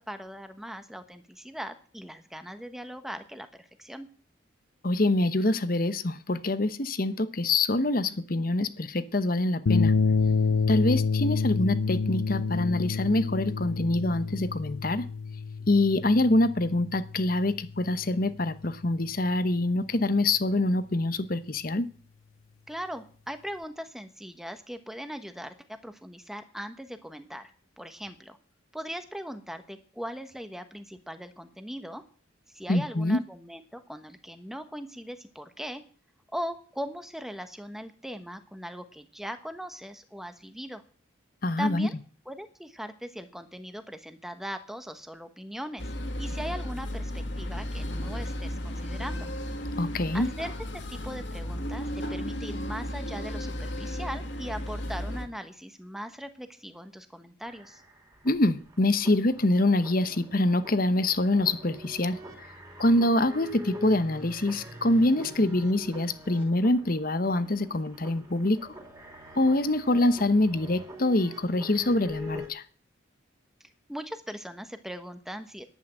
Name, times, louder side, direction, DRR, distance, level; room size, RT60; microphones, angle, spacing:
voice 1, 0.0-4.1 22.7-25.5 25.8-27.5 27.8-28.4 28.7-32.0 32.5-35.8 36.3-40.8 41.6-41.9 42.3-45.9 46.2-49.3 50.1-57.8 73.9-75.6, equal, ahead, 8 dB, 1.2 m, -39 dB
voice 2, 4.8-9.9 10.7-15.1 15.7-21.9 32.7-33.2 41.4-41.9 49.8-50.3 58.2-62.2 62.8-68.6 69.3-72.6, left 2 dB, 45° left, 12 dB, 1.0 m, -25 dB
sound 1, 9.7-18.1, left 4 dB, 90° left, 0.6 m, -28 dB
sound 2, 45.8-55.3, equal, 60° left, 2.0 m, -34 dB
sound 3, 57.5-72.5, left 1 dB, 20° right, 3.0 m, -45 dB
11.0 x 8.6 x 8.8 m, 0.43 s
head